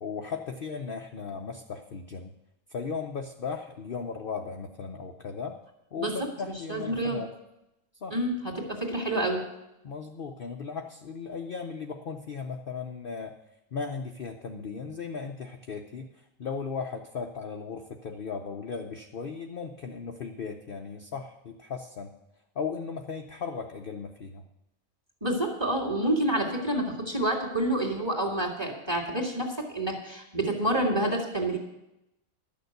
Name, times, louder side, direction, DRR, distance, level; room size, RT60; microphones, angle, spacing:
voice 1, 0.0-2.3 2.7-5.6 5.9-7.3 8.0-8.2 9.8-13.3 13.7-22.1 22.5-24.4, left 5 dB, 50° left, 4 dB, 0.8 m, -36 dB
voice 2, 6.7-7.2 8.1-9.4 25.2-31.6, right 1 dB, 15° right, 0 dB, 2.2 m, -28 dB
12.5 x 6.7 x 8.1 m, 0.90 s
omnidirectional pair, 1.5 m